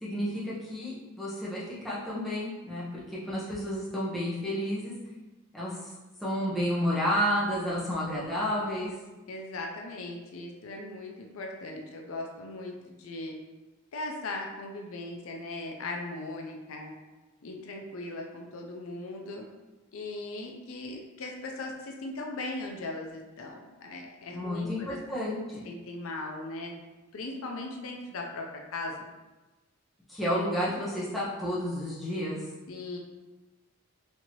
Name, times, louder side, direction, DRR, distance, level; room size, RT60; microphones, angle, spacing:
voice 1, 0.0-4.9 5.5-5.9 6.2-8.9 24.3-25.7 30.1-32.4, equal, ahead, -9 dB, 0.8 m, -31 dB
voice 2, 9.3-12.7 13.0-13.3 13.9-16.9 17.4-19.5 19.9-25.0 25.6-26.7 27.1-29.1 32.7-33.0, left 2 dB, 70° left, 1 dB, 0.5 m, -38 dB
4.4 x 2.7 x 2.9 m, 1.1 s
head